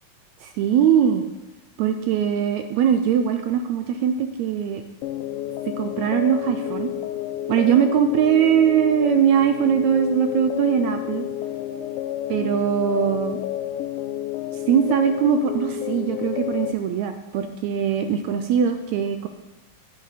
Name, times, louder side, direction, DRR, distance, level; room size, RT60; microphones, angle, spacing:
voice 1, 0.4-1.3 1.8-4.8 5.8-6.9 7.5-11.3 12.3-13.4 14.5-19.3, right 8 dB, 80° right, 7 dB, 1.7 m, -21 dB
sound 1, 5.0-16.7, left 12 dB, 85° left, 2.2 m, -30 dB
10.5 x 9.1 x 4.9 m, 1.0 s
omnidirectional pair, 3.8 m